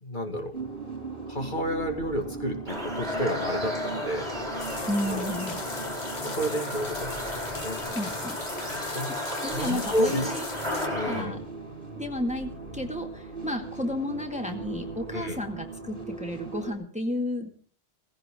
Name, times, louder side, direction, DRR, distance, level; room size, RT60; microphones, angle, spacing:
voice 1, 0.0-0.5 1.3-4.8 5.1-5.3 6.2-8.0 8.5-9.2 9.5-10.3 10.9-11.4 15.1-15.4, equal, 50° left, 4 dB, 2.5 m, -31 dB
sound 1, 0.5-16.7, right 3 dB, 55° right, 4.4 m, -39 dB
sound 2, 2.7-11.2, left 1 dB, 40° right, 5.3 m, -33 dB
sound 3, 4.6-10.9, left 4 dB, 75° left, 1.9 m, -41 dB
voice 2, 4.9-5.6 7.9-8.4 9.4-11.4 12.0-17.5, left 1 dB, 5° right, 4 dB, 2.0 m, -32 dB
17.5 x 16.0 x 3.8 m, 0.44 s
omnidirectional pair, 1.1 m